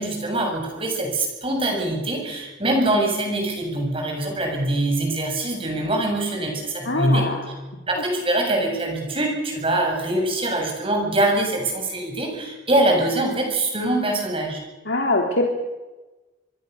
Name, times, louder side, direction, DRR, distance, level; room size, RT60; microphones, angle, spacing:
voice 1, 0.0-7.3 7.9-14.6, right 1 dB, 30° right, 2 dB, 7.4 m, -23 dB
voice 2, 6.8-7.4 14.9-15.5, left 2 dB, 65° left, 1 dB, 2.9 m, -22 dB
26.5 x 22.5 x 6.8 m, 1.2 s
head